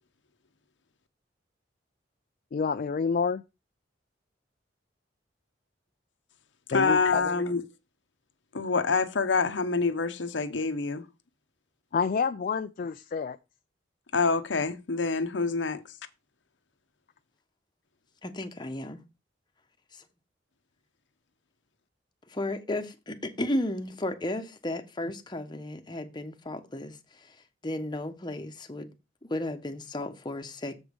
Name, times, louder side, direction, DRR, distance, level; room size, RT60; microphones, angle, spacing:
voice 1, 2.5-3.4 6.7-7.2 11.9-13.4, left 5 dB, 50° left, 0.4 m, -28 dB
voice 2, 6.7-7.6 8.5-11.1 14.1-16.0, left 4 dB, 75° left, 0.8 m, -26 dB
voice 3, 18.2-19.0 19.9-20.0 22.3-27.4 27.6-28.9 29.3-30.8, left 1 dB, 25° left, 1.0 m, -34 dB
7.2 x 5.1 x 5.2 m
head